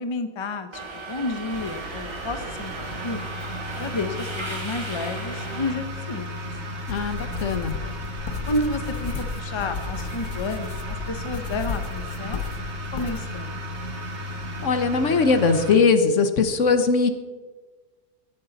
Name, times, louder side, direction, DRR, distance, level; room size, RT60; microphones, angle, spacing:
voice 1, 0.0-3.2 3.8-6.3 8.5-12.4 12.9-13.5, left 2 dB, 25° left, 8 dB, 0.7 m, -31 dB
Subway metro underground, 0.7-5.7, right 2 dB, 20° right, 1.6 m, -37 dB
sound 1, 1.5-15.7, left 1 dB, 50° right, 2.0 m, -34 dB
sound 2, 6.9-13.2, left 5 dB, 80° left, 1.5 m, -34 dB
voice 2, 6.9-7.7 14.6-17.1, left 4 dB, 60° left, 9 dB, 1.2 m, -20 dB
16.5 x 12.0 x 4.0 m, 1.3 s
omnidirectional pair, 1.6 m